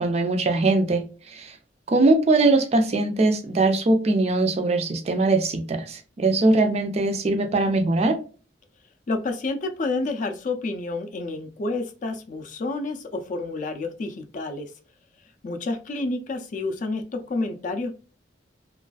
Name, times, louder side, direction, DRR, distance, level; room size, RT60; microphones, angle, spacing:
voice 1, 0.0-1.5 1.9-8.2, right 2 dB, 35° right, 0.3 m, -21 dB
voice 2, 9.1-14.7 15.4-18.0, left 2 dB, 45° left, 0.4 m, -29 dB
2.4 x 2.3 x 2.3 m
head